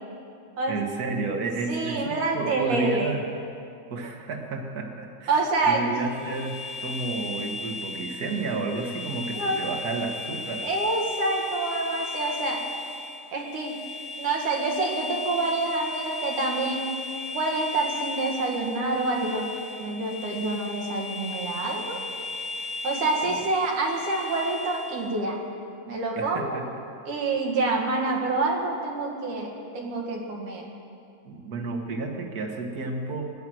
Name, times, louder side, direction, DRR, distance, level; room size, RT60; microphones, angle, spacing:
voice 1, 0.7-3.2 3.9-10.7 23.2-23.4 26.2-26.7 31.2-33.3, right 3 dB, 50° right, 3 dB, 1.2 m, -31 dB
voice 2, 1.7-3.2 5.3-5.8 9.3-9.6 10.6-12.6 13.3-13.8 14.2-16.9 17.3-19.5 19.8-22.0 22.8-25.4 25.9-26.6 27.1-30.7, right 3 dB, 85° right, -1 dB, 3.4 m, -27 dB
sound 1, 5.9-25.2, left 2 dB, 60° left, 2.8 m, -36 dB
17.0 x 10.5 x 7.7 m, 2.6 s
omnidirectional pair, 3.4 m